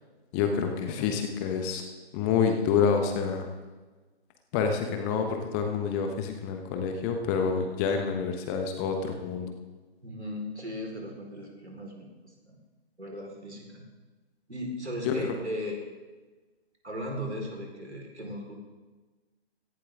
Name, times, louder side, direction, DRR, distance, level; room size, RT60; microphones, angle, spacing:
voice 1, 0.3-1.8 2.1-3.5 4.5-9.5 15.0-15.3, left 6 dB, 15° left, 5 dB, 1.0 m, -28 dB
voice 2, 10.0-12.6 13.0-13.8 14.5-15.8 16.8-18.5, equal, 90° right, 0 dB, 4.7 m, -37 dB
17.0 x 15.0 x 3.8 m, 1.3 s
figure-of-eight pair, 140°, 33 cm